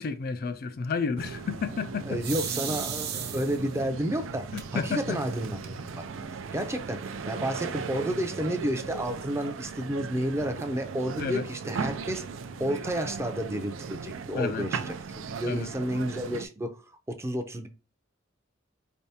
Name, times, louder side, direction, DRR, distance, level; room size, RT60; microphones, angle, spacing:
voice 1, 0.0-2.2 4.5-5.2 11.2-11.4 14.3-14.7 15.5-15.7, left 5 dB, 50° left, 0.4 m, -31 dB
sound 1, 1.2-16.4, right 5 dB, 90° right, 0.4 m, -37 dB
voice 2, 2.1-6.0 6.5-12.2 12.6-16.8 17.1-17.7, equal, 15° right, 0.5 m, -31 dB
sound 2, 2.2-3.8 4.6-4.7 5.1-5.2 5.4-6.0, right 8 dB, 55° right, 0.7 m, -34 dB
4.6 x 3.4 x 2.8 m
head